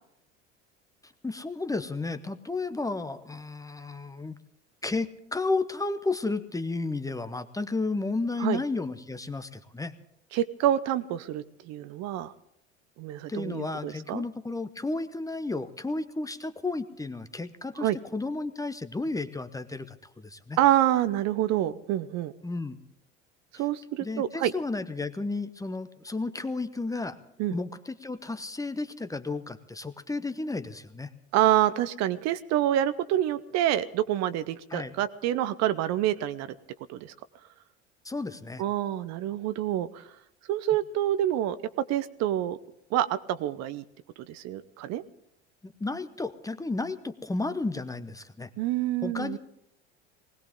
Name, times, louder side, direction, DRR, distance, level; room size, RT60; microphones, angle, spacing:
voice 1, 1.2-4.4 4.8-9.9 13.3-20.6 22.4-22.8 23.5-23.6 24.0-27.2 27.5-31.1 34.7-34.9 38.0-38.6 45.6-48.5 49.0-49.4, left 3 dB, 10° left, 11 dB, 0.9 m, -32 dB
voice 2, 10.3-12.3 13.0-14.2 17.8-18.0 20.6-22.3 23.6-24.5 27.4-27.6 31.3-36.5 36.9-37.1 38.6-40.0 40.5-41.6 41.9-42.6 42.9-43.8 44.3-45.0 48.6-49.4, right 12 dB, 50° right, 14 dB, 0.8 m, -27 dB
20.0 x 18.0 x 3.8 m, 0.77 s
hypercardioid pair, 70°, 34 cm